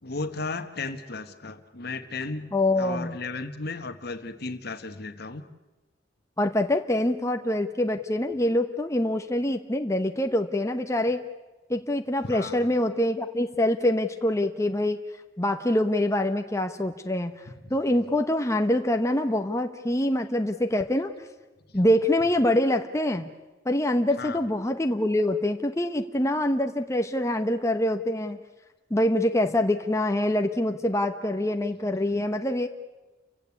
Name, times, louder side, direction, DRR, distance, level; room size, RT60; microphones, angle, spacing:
voice 1, 0.0-5.4 12.2-12.6 17.6-17.7 21.7-21.8 24.2-24.4, left 3 dB, 60° left, 10 dB, 1.4 m, -35 dB
voice 2, 2.5-3.2 6.4-11.2 11.7-15.0 15.4-17.3 17.7-21.1 21.7-23.3 23.6-28.4 28.9-32.7, left 1 dB, 15° left, 6 dB, 1.0 m, -25 dB
29.5 x 16.0 x 8.4 m, 1.1 s
head